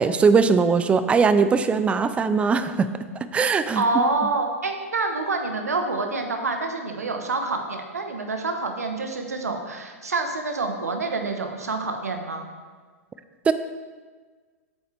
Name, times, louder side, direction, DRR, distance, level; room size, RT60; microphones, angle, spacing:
voice 1, 0.0-2.9 3.3-3.8 13.5-13.6, right 5 dB, 15° right, 12 dB, 0.4 m, -20 dB
voice 2, 3.8-12.5, right 3 dB, 75° right, 5 dB, 1.1 m, -27 dB
8.1 x 7.6 x 3.4 m, 1.5 s
figure-of-eight pair, 105°, 8 cm